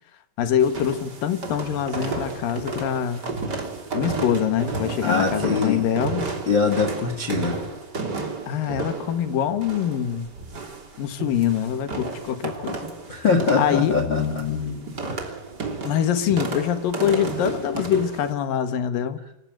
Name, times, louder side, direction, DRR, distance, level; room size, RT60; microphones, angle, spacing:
voice 1, 0.4-3.3 3.9-6.3 8.5-10.3 11.0-12.8 13.6-14.0 15.8-19.2, left 9 dB, 60° left, 10 dB, 2.9 m, -24 dB
sound 1, 0.6-18.3, right 3 dB, 25° right, 3.1 m, -32 dB
voice 2, 5.0-5.8 6.5-7.7 13.1-15.4, left 5 dB, 45° left, 7 dB, 1.6 m, -23 dB
28.0 x 15.5 x 7.8 m, 0.76 s
omnidirectional pair, 5.2 m